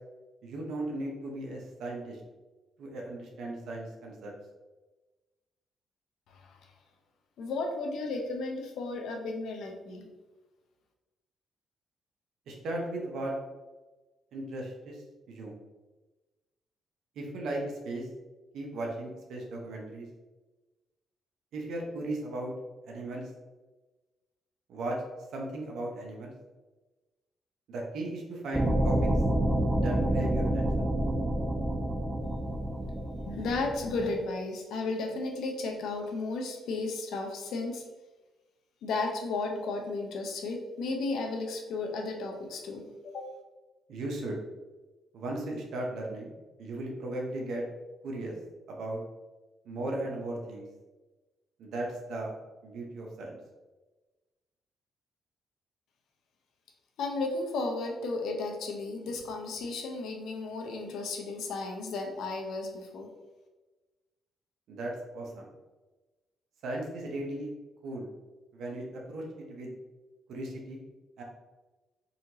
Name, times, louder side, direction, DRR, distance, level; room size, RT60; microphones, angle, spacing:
voice 1, 0.4-2.2 2.8-4.3 12.5-13.3 14.3-15.5 17.2-18.1 18.5-20.1 21.5-22.5 22.9-23.3 24.7-25.0 25.3-26.3 27.7-29.1 29.8-30.8 43.9-44.4 45.1-46.3 46.6-47.6 48.0-48.3 48.7-49.0 49.6-50.6 51.6-52.3 52.6-53.4 64.7-65.5 66.6-67.5 67.8-68.1 68.5-69.2 69.5-69.7 70.3-70.8 71.2-71.3, right 1 dB, 75° right, -1 dB, 0.9 m, -36 dB
voice 2, 6.3-6.6 7.4-10.1 33.2-37.8 38.8-43.2 57.0-63.1, left 3 dB, 75° left, 3 dB, 0.7 m, -34 dB
sound 1, 28.5-34.1, right 1 dB, 15° right, 0.4 m, -28 dB
4.2 x 2.9 x 2.7 m, 1.2 s
cardioid pair, 90°, 0 cm